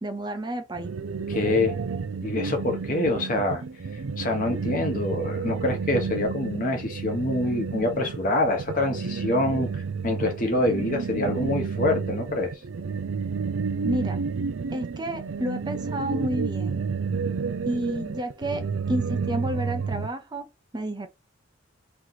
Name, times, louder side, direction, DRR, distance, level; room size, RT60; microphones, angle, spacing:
voice 1, 0.0-0.9 13.8-14.2 14.7-16.8 17.6-20.5 20.7-21.1, right 1 dB, 20° right, 0.6 m, -30 dB
sound 1, 0.7-20.1, right 5 dB, 75° right, 0.4 m, -31 dB
voice 2, 1.3-1.8 2.2-3.6 3.9-12.5, left 2 dB, 40° left, 1.1 m, -26 dB
3.2 x 3.0 x 3.9 m
head